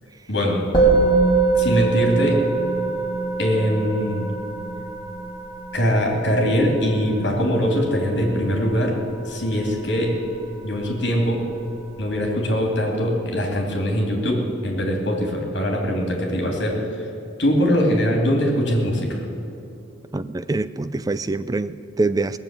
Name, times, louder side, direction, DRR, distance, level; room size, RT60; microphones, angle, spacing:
voice 1, 0.3-0.7 1.5-2.4 3.4-4.3 5.7-9.0 9.3-10.1 10.6-11.4 12.0-16.8 17.4-19.1, equal, 55° left, 0 dB, 2.9 m, -22 dB
Musical instrument, 0.7-10.3, right 4 dB, 20° left, 3.3 m, -23 dB
voice 2, 20.1-22.4, right 3 dB, 20° right, 14 dB, 0.3 m, -25 dB
19.0 x 7.3 x 9.0 m, 2.8 s
head